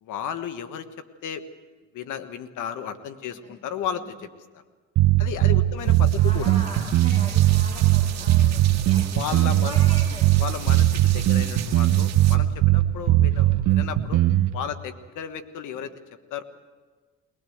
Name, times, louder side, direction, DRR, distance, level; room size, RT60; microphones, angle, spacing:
voice 1, 0.0-1.4 1.9-4.3 5.2-6.5 9.1-9.8 10.4-14.2 14.5-15.9 16.3-16.4, left 8 dB, 85° left, 10 dB, 1.4 m, -34 dB
sound 1, 5.0-14.5, right 14 dB, 85° right, 1.1 m, -19 dB
voice 2, 5.7-10.3, equal, 15° left, -3 dB, 6.9 m, -41 dB
sound 2, 5.8-12.4, right 9 dB, 60° right, 2.2 m, -38 dB
21.5 x 19.0 x 7.9 m, 1.4 s
cardioid pair, 90°, 30 cm